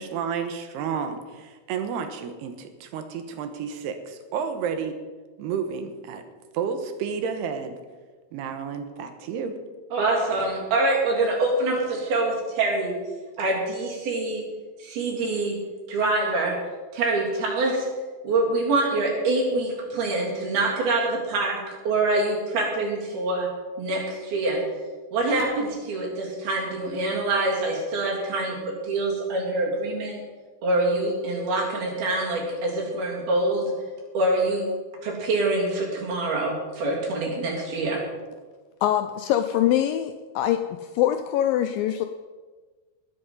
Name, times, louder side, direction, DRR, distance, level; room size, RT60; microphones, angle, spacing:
voice 1, 0.0-5.0 5.4-6.2 6.5-7.8 8.3-9.6, right 6 dB, 90° right, 7 dB, 3.2 m, -31 dB
voice 2, 9.9-13.0 13.4-14.4 14.8-15.6 15.9-16.6 16.9-17.9 18.2-21.6 21.9-23.5 23.8-24.6 25.1-28.6 28.8-30.2 30.6-33.7 34.2-34.7 35.0-38.0, right 2 dB, 70° right, -3 dB, 5.1 m, -25 dB
voice 3, 38.8-40.6 41.0-42.1, left 11 dB, 80° left, 7 dB, 2.0 m, -23 dB
20.0 x 7.9 x 5.5 m, 1.4 s
omnidirectional pair, 4.6 m